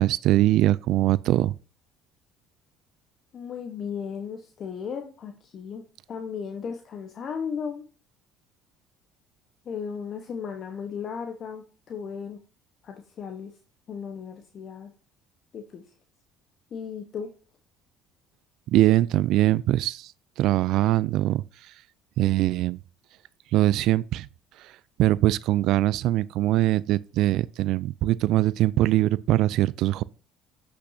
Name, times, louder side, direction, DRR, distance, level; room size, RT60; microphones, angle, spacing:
voice 1, 0.0-1.5 18.7-20.1 20.4-21.4 22.2-22.8 23.5-24.3 24.6-24.7 25.0-30.0, right 15 dB, 70° right, 0.3 m, -22 dB
voice 2, 3.3-7.8 9.6-12.4 12.8-13.5 13.9-14.9 15.5-15.8 16.7-17.3, left 6 dB, 50° left, 1.1 m, -35 dB
8.2 x 6.0 x 2.7 m
supercardioid pair, 85°, 0 cm